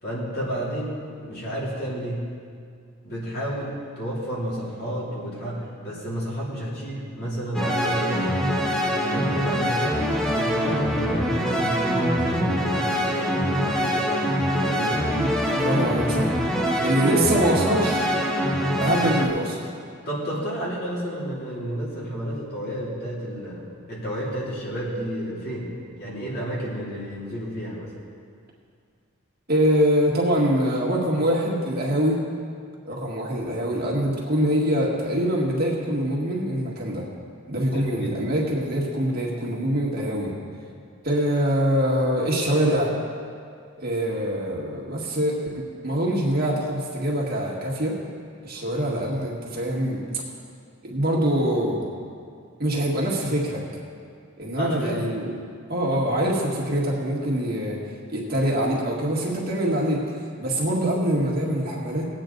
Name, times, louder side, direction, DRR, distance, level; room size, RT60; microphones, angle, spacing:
voice 1, 0.0-2.3 3.0-8.5 8.9-14.2 14.6-15.0 18.9-19.1 20.0-27.9 37.7-38.3 54.6-55.1 55.9-56.1, equal, 45° left, -6 dB, 3.0 m, -31 dB
sound 1, 7.5-19.3, equal, ahead, 0.9 m, -24 dB
voice 2, 15.6-16.4 16.8-18.1 18.8-19.6 29.5-32.2 32.9-37.1 37.5-40.3 41.0-42.9 43.8-48.0 48.4-50.0 50.8-51.8 52.6-53.6 54.4-55.3 55.7-57.8 58.1-62.1, equal, 45° right, -3 dB, 1.9 m, -24 dB
19.5 x 8.7 x 3.9 m, 2.2 s
head